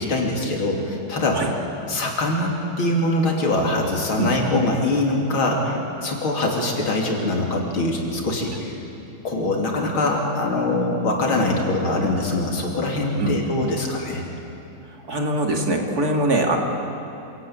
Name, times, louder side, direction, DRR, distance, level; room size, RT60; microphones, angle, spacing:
voice 1, 0.0-1.4 1.9-8.8 9.2-14.3, left 2 dB, 85° left, 0 dB, 4.0 m, -23 dB
voice 2, 15.1-16.6, right 2 dB, 50° right, 1 dB, 2.7 m, -22 dB
27.5 x 17.5 x 8.8 m, 2.9 s
omnidirectional pair, 2.2 m